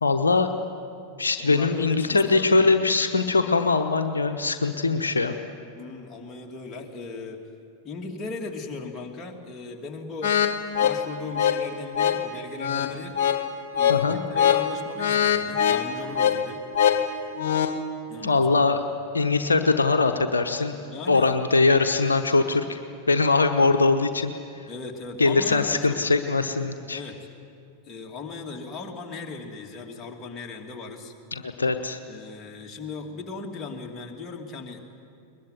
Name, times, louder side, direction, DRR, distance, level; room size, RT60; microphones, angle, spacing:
voice 1, 0.0-0.5 1.2-5.3 13.9-14.2 18.2-18.8 19.1-20.7 21.1-22.8 23.1-24.3 25.2-27.0 31.3-32.0, left 3 dB, 75° left, 6 dB, 0.9 m, -22 dB
voice 2, 1.4-2.7 5.7-7.4 7.8-10.4 10.8-13.2 13.7-16.6 18.1-18.7 20.9-21.6 24.7-26.0 26.9-27.2 27.8-31.1 32.0-34.8, left 4 dB, 20° left, 0 dB, 2.8 m, -38 dB
sound 1, 10.2-17.8, left 8 dB, 55° left, 1.4 m, -24 dB
21.5 x 21.0 x 9.5 m, 2.4 s
figure-of-eight pair, 90°, 0 cm